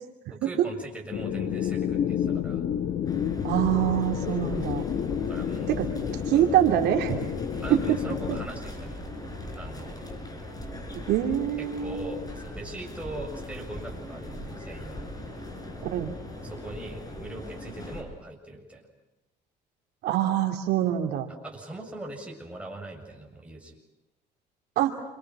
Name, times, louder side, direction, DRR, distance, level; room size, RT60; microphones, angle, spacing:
voice 1, 0.3-2.6 4.5-4.6 5.2-5.7 6.3-6.5 7.6-9.1 9.6-9.9 11.6-15.1 16.4-18.9 21.4-23.7, right 2 dB, 5° right, 0 dB, 7.3 m, -41 dB
sound 1, 1.1-8.5, left 9 dB, 55° left, 1.5 m, -30 dB
sound 2, 3.1-18.0, left 1 dB, 20° left, 6.6 m, -39 dB
voice 2, 3.4-4.8 5.7-5.9 6.3-7.2 7.7-8.0 8.3-8.4 11.1-12.2 15.9-16.1 20.0-21.3 24.8-25.0, right 11 dB, 80° right, 3 dB, 2.7 m, -24 dB
29.5 x 26.0 x 6.2 m, 0.96 s
cardioid pair, 110°, 17 cm